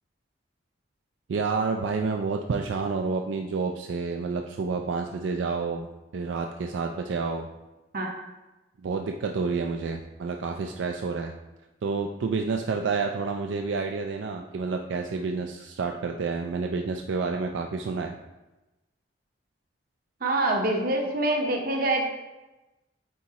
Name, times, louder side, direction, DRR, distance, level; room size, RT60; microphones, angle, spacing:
voice 1, 1.3-5.9 6.1-7.5 8.8-11.3 11.8-18.2, right 4 dB, 75° right, 3 dB, 0.4 m, -29 dB
voice 2, 20.2-22.0, right 2 dB, 50° right, 1 dB, 0.9 m, -25 dB
8.3 x 4.1 x 2.9 m, 1.1 s
head